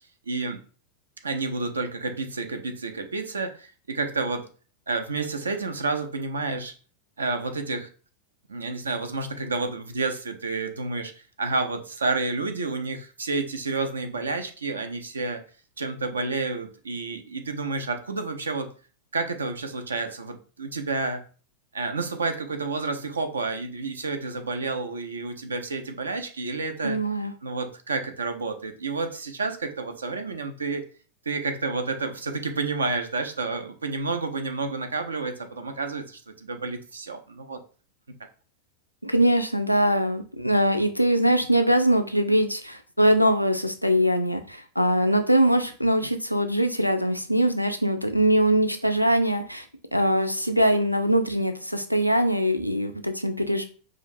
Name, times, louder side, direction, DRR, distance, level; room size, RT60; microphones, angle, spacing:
voice 1, 0.3-0.6 1.2-4.5 4.9-6.7 7.2-7.9 8.5-15.4 15.8-18.7 19.1-21.2 21.7-27.0 27.4-30.8 31.3-37.6, right 3 dB, 75° right, 7 dB, 0.5 m, -30 dB
voice 2, 26.8-27.3 39.0-49.6 49.9-53.6, equal, 90° left, 6 dB, 0.4 m, -22 dB
5.0 x 2.4 x 2.6 m, 0.39 s
figure-of-eight pair, 90°, 0 cm